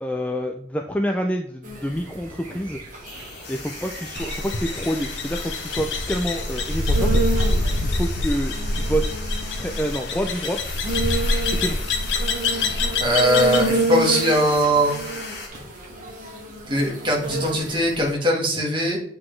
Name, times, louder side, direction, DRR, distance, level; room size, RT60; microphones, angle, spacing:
voice 1, 0.0-2.8 3.5-7.2 7.8-9.2 9.4-10.6 11.5-12.0, equal, 5° left, 2 dB, 0.3 m, -27 dB
sound 1, 1.6-18.1, right 2 dB, 40° right, 1.4 m, -31 dB
sound 2, 3.1-15.5, left 3 dB, 55° left, 1.6 m, -38 dB
sound 3, 4.2-13.7, left 2 dB, 70° left, 0.8 m, -25 dB
voice 2, 13.0-14.9 16.7-19.0, equal, 25° right, -1 dB, 1.6 m, -20 dB
7.7 x 4.0 x 3.2 m, 0.65 s
head